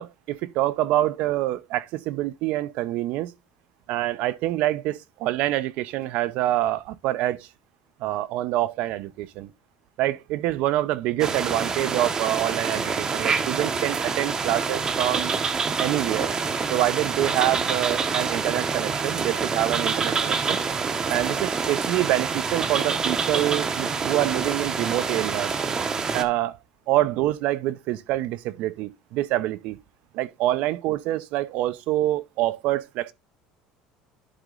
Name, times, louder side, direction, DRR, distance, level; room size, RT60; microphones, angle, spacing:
voice 1, 0.0-3.3 3.9-7.5 8.0-9.5 10.0-15.3 15.8-16.3 16.7-20.6 21.1-25.6 26.1-26.6 26.9-29.8 30.1-33.1, right 15 dB, 60° right, 0.6 m, -26 dB
sound 1, 11.2-26.2, right 5 dB, 25° right, 0.7 m, -26 dB
11.0 x 3.9 x 3.8 m
cardioid pair, 145°, 3 cm